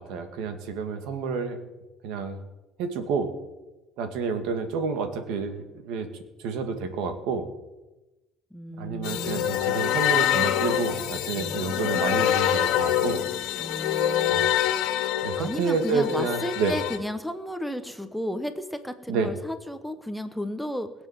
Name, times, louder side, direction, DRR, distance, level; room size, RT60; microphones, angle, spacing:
voice 1, 0.0-1.6 2.0-2.4 2.8-3.3 4.0-6.1 6.4-7.5 8.8-13.2 14.3-14.4 15.2-16.8 19.1-19.3, right 5 dB, 75° right, 8 dB, 2.0 m, -29 dB
voice 2, 8.5-9.5 11.3-11.6 13.6-14.6 15.3-20.9, left 1 dB, ahead, 8 dB, 0.9 m, -33 dB
sound 1, 9.0-17.0, left 11 dB, 70° left, 1.8 m, -25 dB
20.5 x 7.2 x 7.4 m, 1.1 s
cardioid pair, 145°, 0 cm